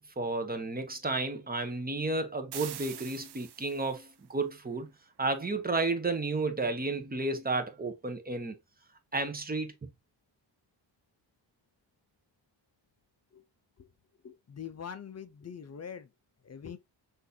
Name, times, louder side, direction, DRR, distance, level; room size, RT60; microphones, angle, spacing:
voice 1, 0.2-4.9 5.2-8.6 9.1-9.7, right 3 dB, 20° right, 0.9 m, -32 dB
sound 1, 2.5-4.1, right 11 dB, 65° right, 0.6 m, -44 dB
voice 2, 14.2-16.1 16.4-16.8, left 7 dB, 35° left, 0.5 m, -43 dB
6.1 x 2.7 x 2.7 m
wide cardioid pair, 130°, 44 cm